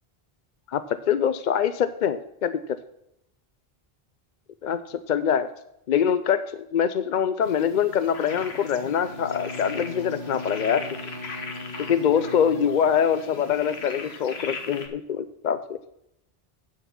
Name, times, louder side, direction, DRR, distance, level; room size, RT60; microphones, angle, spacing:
voice 1, 0.7-2.6 4.6-5.5 5.9-10.8 11.9-15.8, left 8 dB, 55° left, 12 dB, 0.6 m, -24 dB
sound 1, 7.4-14.9, left 4 dB, 85° left, 1.5 m, -39 dB
Bowed string instrument, 9.0-13.2, left 1 dB, 55° right, 2.1 m, -39 dB
9.0 x 6.9 x 5.8 m, 0.80 s
omnidirectional pair, 1.0 m